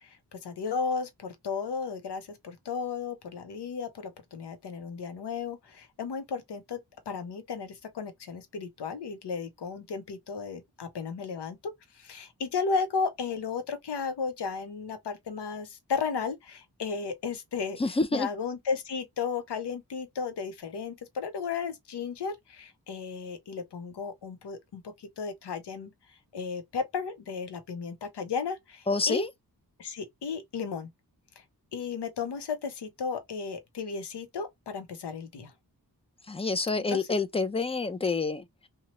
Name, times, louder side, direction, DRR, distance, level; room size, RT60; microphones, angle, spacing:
voice 1, 0.0-6.8 7.1-17.8 18.1-29.3 29.8-30.9 31.7-35.5 36.7-37.1, left 5 dB, 80° left, 0.8 m, -34 dB
voice 2, 17.8-18.3 28.9-29.3 36.3-38.7, left 3 dB, 15° left, 0.4 m, -28 dB
2.9 x 2.3 x 2.9 m
wide cardioid pair, 70°, 40 cm